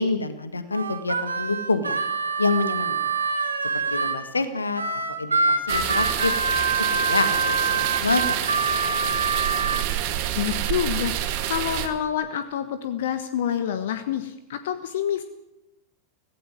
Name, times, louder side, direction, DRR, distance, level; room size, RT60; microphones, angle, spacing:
voice 1, 0.0-2.0 2.4-3.1 3.7-4.8 5.2-6.3 6.7-8.2 8.7-8.8, left 3 dB, 80° left, 12 dB, 1.7 m, -27 dB
Harmonica, 0.7-4.2 4.7-9.9, right 4 dB, 75° right, 1.9 m, -25 dB
sound 1, 5.7-11.9, right 11 dB, 45° right, 1.9 m, -28 dB
voice 2, 10.3-15.2, left 9 dB, 55° left, 11 dB, 1.3 m, -27 dB
16.5 x 16.0 x 9.7 m, 0.87 s
figure-of-eight pair, 90°, 0 cm